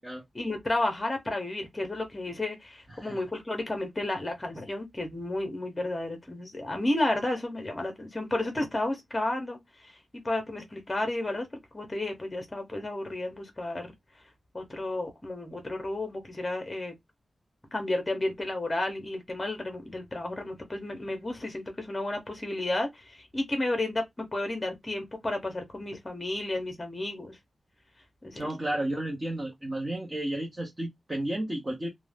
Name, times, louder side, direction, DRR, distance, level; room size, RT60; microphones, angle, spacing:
voice 1, 0.3-10.0 10.2-11.5 11.7-13.9 14.5-16.9 17.7-27.4 28.2-28.5, left 2 dB, 15° left, 0.7 m, -32 dB
voice 2, 2.9-3.2 28.3-31.9, right 1 dB, 20° right, 0.6 m, -32 dB
2.5 x 2.0 x 3.2 m
wide cardioid pair, 165°, 0 cm